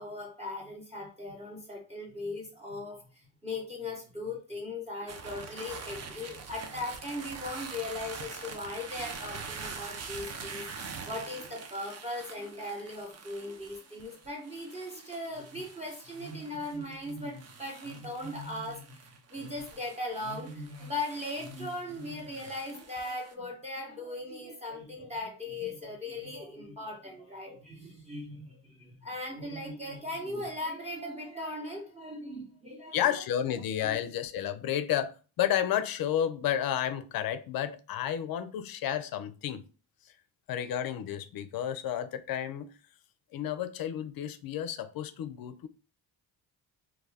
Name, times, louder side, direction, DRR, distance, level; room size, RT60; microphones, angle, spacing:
voice 1, 0.0-10.7 11.0-33.0 33.8-34.0, left 2 dB, 15° right, 0.9 m, -38 dB
sound 1, 5.1-23.3, right 5 dB, 35° right, 0.5 m, -45 dB
voice 2, 32.9-39.6 40.5-42.7 43.3-45.7, left 10 dB, 50° left, 0.5 m, -31 dB
2.3 x 2.2 x 3.3 m
supercardioid pair, 60°, 47 cm